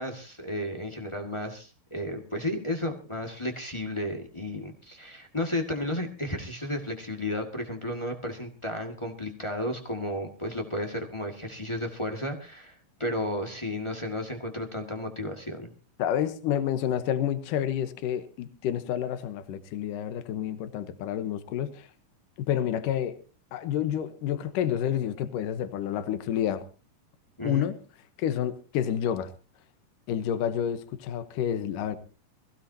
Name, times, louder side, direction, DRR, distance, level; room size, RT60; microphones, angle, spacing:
voice 1, 0.0-15.7 27.4-27.7, left 1 dB, 20° left, 0.9 m, -33 dB
voice 2, 16.0-21.9 22.5-23.2 23.5-26.6 27.4-27.7 28.2-29.3 30.1-32.0, left 10 dB, 75° left, 2.6 m, -29 dB
23.0 x 16.0 x 2.8 m
omnidirectional pair, 3.9 m